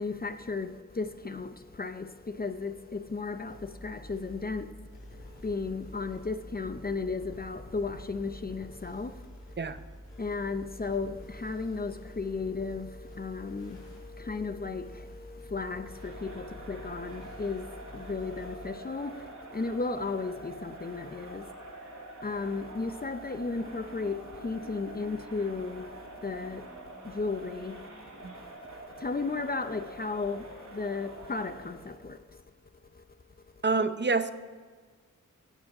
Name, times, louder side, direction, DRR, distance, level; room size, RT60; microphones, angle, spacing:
voice 1, 0.0-4.7 5.1-9.2 10.1-21.5 22.2-26.7 27.0-27.9 28.3-32.4 32.9-33.0, left 4 dB, 30° left, 0.6 m, -35 dB
sound 1, 3.5-18.7, equal, 70° left, 4.0 m, -48 dB
Crowd, 15.8-32.0, right 2 dB, 80° right, 2.8 m, -46 dB
voice 2, 33.6-34.3, right 4 dB, 35° right, 0.7 m, -27 dB
17.0 x 6.3 x 4.8 m
wide cardioid pair, 85°, 31 cm